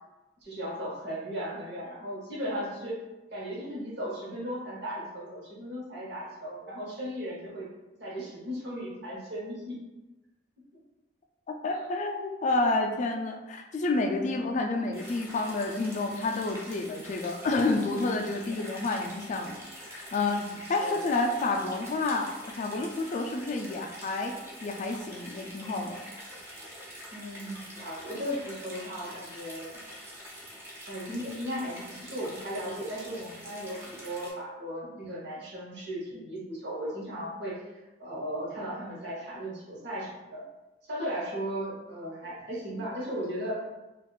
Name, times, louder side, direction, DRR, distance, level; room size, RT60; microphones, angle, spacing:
voice 1, 0.4-3.0 3.3-7.7 8.0-9.8 10.7-10.8 14.4-14.5 20.4-20.5 20.8-21.0 27.1-29.8 30.9-37.6 38.0-40.5 40.9-43.5, equal, 65° right, -6 dB, 1.0 m, -36 dB
voice 2, 11.5-26.0, left 2 dB, 40° left, 4 dB, 0.3 m, -29 dB
sound 1, 14.9-34.3, equal, 15° right, 0.7 m, -45 dB
3.5 x 2.4 x 2.3 m, 1.0 s
head